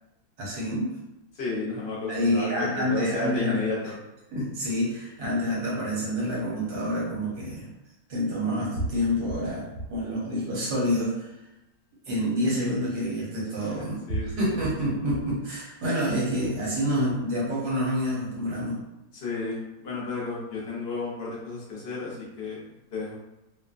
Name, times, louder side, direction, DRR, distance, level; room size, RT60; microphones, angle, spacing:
voice 1, 0.4-0.9 2.1-3.6 3.8-3.9 4.3-7.6 8.1-9.6 9.9-11.3 12.1-18.8, equal, 70° right, -5 dB, 1.5 m, -28 dB
voice 2, 1.3-3.9 13.6-14.6 19.1-22.6 22.9-23.2, left 3 dB, 55° left, -5 dB, 0.7 m, -32 dB
sound 1, 6.8-6.9 8.1-8.2 8.8-10.1 10.6-11.2 12.1-12.2 13.4-13.5 14.1-15.4 15.9-16.5, right 2 dB, 90° right, 1.2 m, -35 dB
3.0 x 2.1 x 2.4 m, 0.92 s
omnidirectional pair, 1.8 m